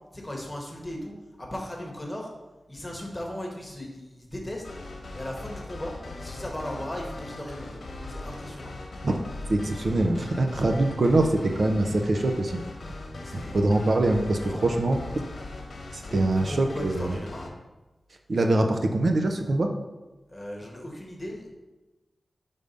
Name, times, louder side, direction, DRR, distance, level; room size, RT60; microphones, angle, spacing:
voice 1, 0.1-1.1 1.4-2.3 2.7-4.6 5.1-7.8 8.1-8.7 10.5-10.9 13.2-13.5 14.4-14.7 16.0-17.5 20.3-21.5, left 1 dB, 15° left, -1 dB, 1.1 m, -37 dB
sound 1, 4.6-17.5, left 2 dB, 80° left, 1.0 m, -39 dB
voice 2, 9.5-12.6 13.3-15.0 15.9-17.1 18.3-19.7, right 2 dB, 55° right, 4 dB, 0.5 m, -24 dB
5.3 x 3.5 x 5.2 m, 1.1 s
wide cardioid pair, 125°, 0 cm